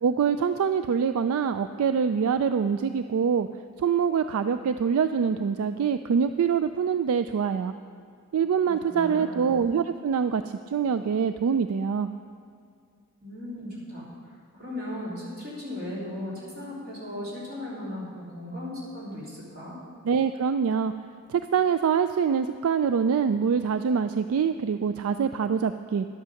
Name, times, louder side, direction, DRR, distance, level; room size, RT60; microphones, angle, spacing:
voice 1, 0.0-3.5 3.8-7.7 8.3-10.4 10.7-12.1 20.0-20.9 21.3-26.1, right 6 dB, 70° right, 10 dB, 0.3 m, -24 dB
voice 2, 8.8-9.5 13.2-14.0 14.5-19.7, left 1 dB, 45° right, -7 dB, 3.6 m, -36 dB
11.5 x 8.2 x 6.4 m, 2.3 s
head